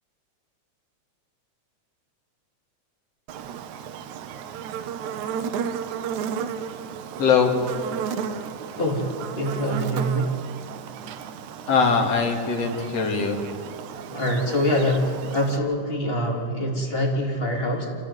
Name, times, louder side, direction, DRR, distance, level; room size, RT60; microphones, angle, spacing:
Buzz, 3.3-15.6, right 7 dB, 80° right, 2.3 m, -34 dB
voice 1, 7.2-7.5 11.7-13.4, left 5 dB, 60° left, 1 dB, 3.5 m, -21 dB
voice 2, 8.8-10.3 14.1-17.9, equal, 20° left, -1 dB, 3.7 m, -24 dB
27.5 x 14.5 x 9.5 m, 2.3 s
omnidirectional pair, 3.3 m